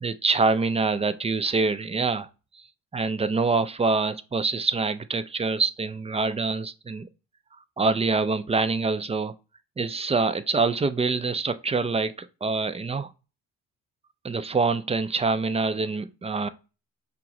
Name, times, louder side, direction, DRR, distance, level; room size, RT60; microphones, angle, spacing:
voice 1, 0.0-2.3 2.5-2.7 2.9-7.1 7.8-9.3 9.8-13.1 14.2-16.5, right 4 dB, 20° right, 0.4 m, -25 dB
5.9 x 2.1 x 3.6 m
cardioid pair, 75°, 36 cm